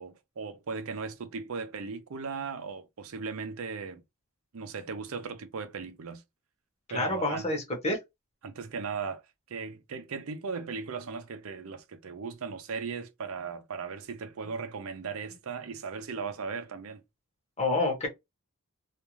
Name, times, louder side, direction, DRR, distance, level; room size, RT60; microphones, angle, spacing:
voice 1, 0.0-4.0 4.5-6.2 6.9-7.5 8.4-9.2 9.5-17.0, right 5 dB, 70° right, 0.5 m, -37 dB
voice 2, 6.9-8.0 17.6-18.1, left 2 dB, 30° left, 0.9 m, -28 dB
2.5 x 2.3 x 3.0 m
head